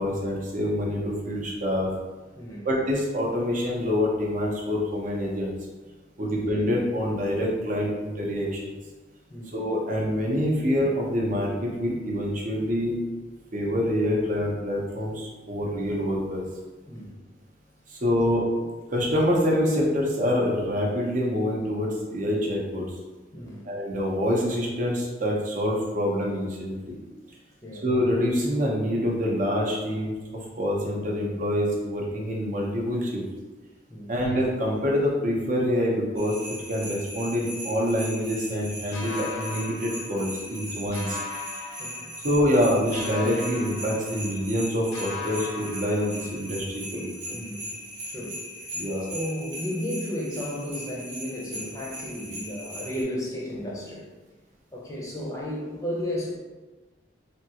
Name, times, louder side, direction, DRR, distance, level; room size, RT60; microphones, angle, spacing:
voice 1, 0.0-1.9 2.6-5.5 6.2-8.7 9.5-13.0 13.5-16.4 17.9-18.5 18.9-22.8 23.7-27.0 27.8-30.2 30.5-33.2 34.1-36.4 36.7-41.2 41.6-41.7 42.2-47.4 48.7-49.1, equal, 45° right, -3 dB, 0.7 m, -26 dB
voice 2, 2.4-2.7 6.3-6.4 9.3-9.6 16.9-17.2 23.3-23.7 27.6-27.9 33.9-34.1 40.8-40.9 41.8-42.1 47.3-47.7 48.0-48.7 49.1-54.1 54.7-56.4, left 1 dB, 15° left, -4 dB, 0.6 m, -34 dB
sound 1, 36.2-53.0, equal, 70° right, 0.9 m, -39 dB
sound 2, 38.9-40.6 40.9-42.6 42.9-44.6 44.9-46.6, left 4 dB, 75° left, 0.5 m, -39 dB
3.4 x 2.4 x 2.8 m, 1.2 s
head